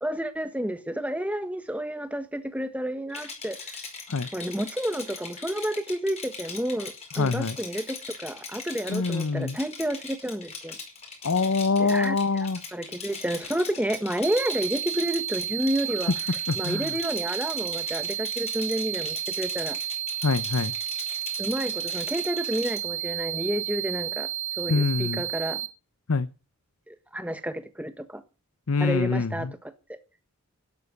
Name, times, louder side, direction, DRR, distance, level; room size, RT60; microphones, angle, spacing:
voice 1, 0.0-3.7 4.3-10.7 11.8-12.2 12.7-16.1 16.6-19.8 21.4-24.3 24.6-25.6 26.9-28.2 28.8-29.5 29.9-30.0, equal, 5° right, 1.4 m, -30 dB
Rattle, 3.1-22.8, left 5 dB, 30° left, 4.9 m, -40 dB
voice 2, 7.2-7.6 8.9-9.6 11.2-12.6 16.5-16.9 20.2-20.7 24.7-25.2 26.1-26.3 28.7-29.5, left 4 dB, 80° left, 0.8 m, -25 dB
sound 1, 14.2-25.7, right 13 dB, 65° right, 1.2 m, -32 dB
12.5 x 11.5 x 8.1 m
head